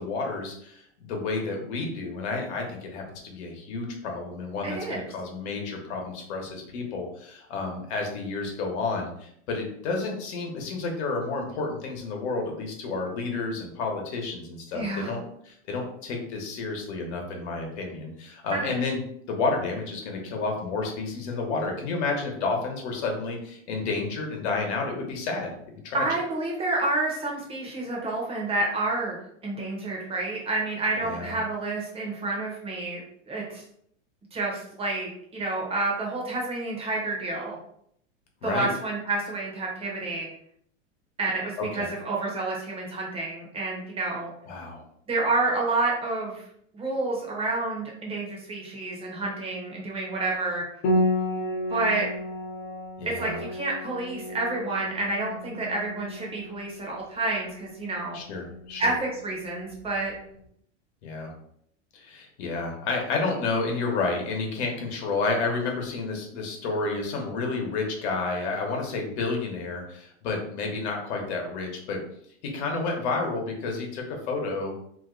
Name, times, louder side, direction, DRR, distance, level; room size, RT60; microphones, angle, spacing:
voice 1, 0.0-19.0 19.3-26.2 31.0-31.3 38.4-38.7 41.6-41.9 44.5-44.8 53.0-53.4 58.1-58.9 61.0-61.3 61.9-72.0 72.4-74.7, left 3 dB, 60° left, 1 dB, 1.1 m, -30 dB
voice 2, 4.6-5.0 14.7-15.2 18.5-18.8 25.9-29.2 29.4-33.0 33.3-33.6 34.3-37.6 38.4-40.3 41.2-44.3 45.1-46.5 46.7-50.6 51.7-52.1 53.1-58.2 58.8-60.1, right 2 dB, 15° right, -3 dB, 0.7 m, -29 dB
Piano, 50.8-60.2, left 1 dB, 40° left, 0.7 m, -32 dB
2.7 x 2.2 x 3.7 m, 0.69 s
supercardioid pair, 145°, 37 cm